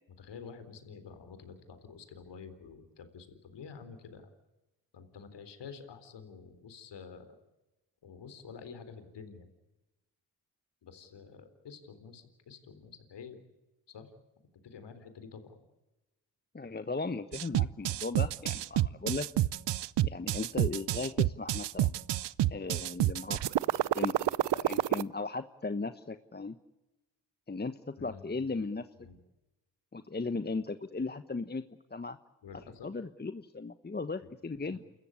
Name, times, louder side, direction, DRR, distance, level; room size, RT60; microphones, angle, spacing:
voice 1, 0.2-4.3 4.9-7.4 8.0-9.5 10.8-13.4 13.9-14.1 14.6-15.6 28.0-28.7 29.0-29.2 32.4-32.9 34.2-34.3 34.6-34.8, left 6 dB, 75° left, 10 dB, 3.9 m, -49 dB
voice 2, 16.5-19.3 20.0-21.9 22.5-24.2 24.5-26.6 27.5-28.9 29.9-31.6 31.9-32.2 32.8-34.8, left 3 dB, 25° left, 10 dB, 1.2 m, -37 dB
sound 1, 17.3-25.0, right 14 dB, 75° right, 0.7 m, -28 dB
29.0 x 14.5 x 9.8 m, 1.0 s
supercardioid pair, 55°, 42 cm